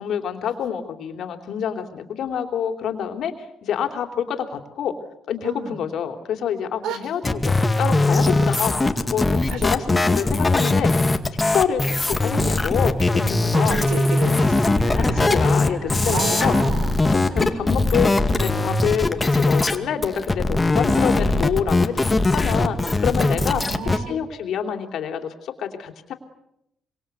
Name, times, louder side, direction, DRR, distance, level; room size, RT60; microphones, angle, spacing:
voice 1, 0.0-4.9 5.3-10.9 11.4-13.8 15.0-16.5 17.1-23.6 23.9-26.1, left 8 dB, 70° left, 6 dB, 3.4 m, -27 dB
voice 2, 5.4-5.8 6.8-7.1 8.1-8.5 9.5-9.6 13.5-15.4 16.1-16.9 17.2-17.6 23.5-24.2, right 5 dB, 85° right, 10 dB, 4.3 m, -31 dB
sound 1, 7.2-19.8 20.0-24.0, left 2 dB, 20° left, 2.2 m, -20 dB
sound 2, 14.7-18.6 19.8-19.9, right 2 dB, 25° right, 4.0 m, -35 dB
26.5 x 24.0 x 8.2 m, 0.82 s
cardioid pair, 90°, 0 cm